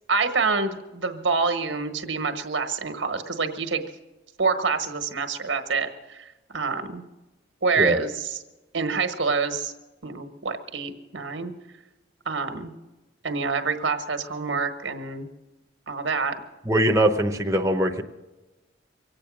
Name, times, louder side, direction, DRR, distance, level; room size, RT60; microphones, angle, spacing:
voice 1, 0.1-3.8 4.4-7.0 7.6-8.4 8.7-9.7 10.0-11.5 12.2-12.7 13.2-15.3 15.9-16.3, right 4 dB, 80° right, 7 dB, 1.4 m, -27 dB
voice 2, 16.6-18.0, right 1 dB, 15° right, 3 dB, 0.8 m, -21 dB
23.5 x 8.7 x 6.3 m, 1.1 s
head